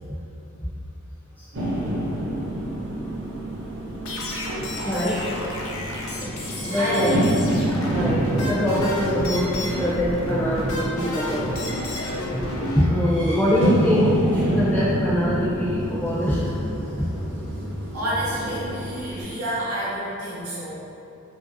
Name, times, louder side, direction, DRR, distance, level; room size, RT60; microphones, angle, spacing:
sound 1, 1.5-19.2, right 1 dB, 55° right, 0.7 m, -28 dB
sound 2, 4.1-12.8, left 1 dB, 70° left, 0.5 m, -31 dB
voice 1, 4.8-5.2 6.2-6.3 6.6-7.1 7.9-11.6 12.7-16.4, equal, 10° left, -8 dB, 0.5 m, -24 dB
voice 2, 6.6-7.2 17.9-20.8, right 1 dB, 85° right, -8 dB, 0.7 m, -29 dB
2.8 x 2.5 x 2.6 m, 2.8 s
head